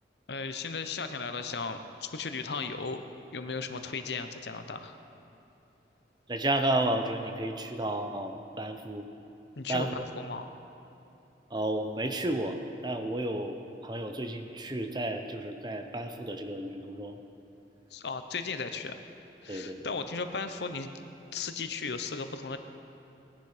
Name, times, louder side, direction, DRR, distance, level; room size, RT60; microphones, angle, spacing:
voice 1, 0.3-3.0 3.3-5.0 9.6-10.5 17.9-19.0 19.4-20.9 21.3-22.6, left 4 dB, 70° left, 8 dB, 0.8 m, -36 dB
voice 2, 6.3-9.1 9.7-9.9 11.5-12.6 12.8-13.6 13.8-17.1 19.5-19.9, right 1 dB, 25° right, 6 dB, 0.8 m, -32 dB
19.0 x 10.5 x 5.0 m, 2.9 s
head